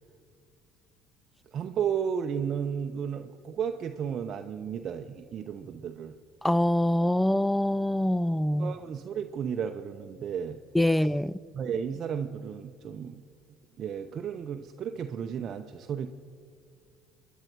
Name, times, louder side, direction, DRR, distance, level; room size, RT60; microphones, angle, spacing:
voice 1, 1.5-6.2 8.6-10.6 10.9-11.1 11.5-13.2 13.8-16.1, right 7 dB, 50° right, 0.7 m, -33 dB
voice 2, 6.4-8.7 10.7-11.3, left 1 dB, 5° left, 0.5 m, -24 dB
27.0 x 11.0 x 4.6 m
hypercardioid pair, 75°, 0 cm